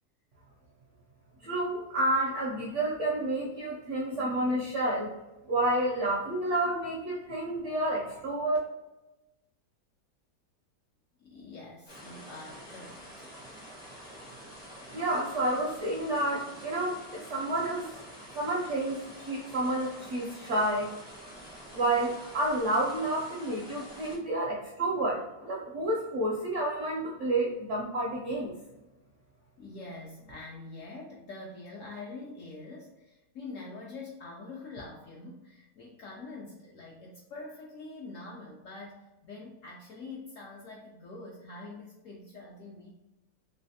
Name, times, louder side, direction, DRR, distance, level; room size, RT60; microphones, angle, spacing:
voice 1, 1.4-5.1 5.5-8.6 14.9-17.9 18.4-20.9 21.7-28.5, right 1 dB, 70° right, -4 dB, 0.7 m, -30 dB
voice 2, 11.2-13.3 29.6-42.9, left 3 dB, 70° left, -2 dB, 0.7 m, -45 dB
sound 1, 11.9-24.2, equal, 25° left, 0.5 m, -47 dB
3.2 x 3.1 x 2.7 m, 1.0 s
omnidirectional pair, 1.8 m